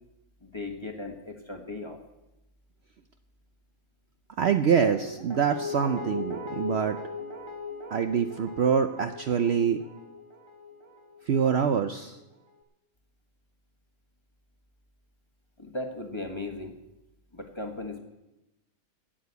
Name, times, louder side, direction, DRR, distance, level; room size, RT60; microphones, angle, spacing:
voice 1, 0.4-2.0 15.6-16.7 17.3-18.0, left 2 dB, 20° left, 3 dB, 1.3 m, -37 dB
voice 2, 4.4-7.0 7.9-9.8 11.3-12.2, right 7 dB, 60° right, 8 dB, 0.8 m, -25 dB
Guitar, 4.8-11.8 12.1-12.2, left 3 dB, 20° right, 1.6 m, -39 dB
11.5 x 8.7 x 8.2 m, 0.95 s
omnidirectional pair, 1.5 m